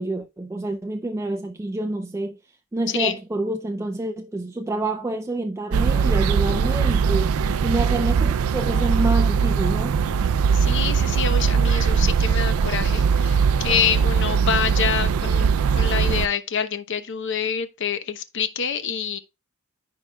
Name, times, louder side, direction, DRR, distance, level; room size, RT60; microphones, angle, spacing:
voice 1, 0.0-2.4 2.7-10.0, right 2 dB, 15° right, 0.3 m, -28 dB
sound 1, 5.7-16.3, right 6 dB, 85° right, 0.4 m, -20 dB
voice 2, 10.5-15.5 15.8-19.2, left 7 dB, 60° left, 0.8 m, -26 dB
14.0 x 4.7 x 2.3 m
head